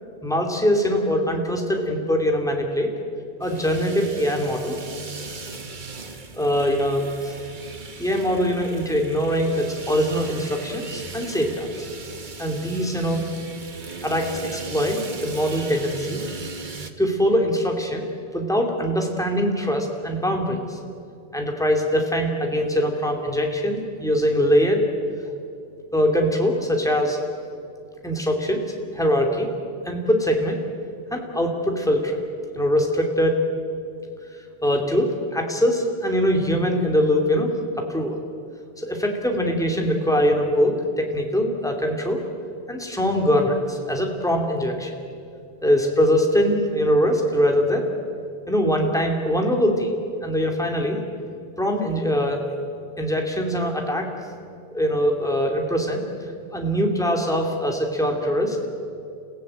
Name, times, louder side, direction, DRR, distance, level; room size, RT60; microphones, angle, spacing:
voice 1, 0.2-2.9 3.4-4.7 6.3-7.4 8.0-11.9 12.4-13.2 14.0-16.2 17.0-18.0 18.3-20.8 21.3-24.8 25.2-25.3 25.9-27.2 28.0-28.6 28.9-29.5 29.8-30.6 31.1-32.2 32.5-33.4 34.6-38.2 38.8-42.2 42.7-45.0 45.6-47.8 48.5-49.9 50.2-51.0 51.6-52.4 53.0-54.1 54.7-56.0 56.5-58.6, equal, 5° left, 1 dB, 2.8 m, -22 dB
sound 1, 3.4-16.9, right 3 dB, 50° right, 1.5 m, -37 dB
29.5 x 16.0 x 8.8 m, 2.5 s
omnidirectional pair, 1.1 m